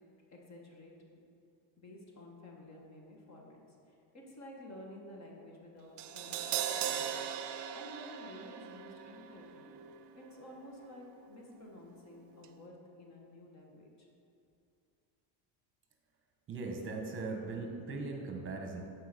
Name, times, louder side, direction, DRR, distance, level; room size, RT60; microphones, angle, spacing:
voice 1, 0.3-0.9 1.8-3.5 3.9-7.2 7.7-9.7 10.1-14.1, left 1 dB, 35° left, 0 dB, 1.4 m, -52 dB
Crash cymbal, 6.0-12.1 12.4-12.5, right 9 dB, 55° right, 0.6 m, -40 dB
voice 2, 16.5-18.8, right 3 dB, 25° right, 2 dB, 1.2 m, -39 dB
7.8 x 4.7 x 6.7 m, 2.6 s
cardioid pair, 145°, 49 cm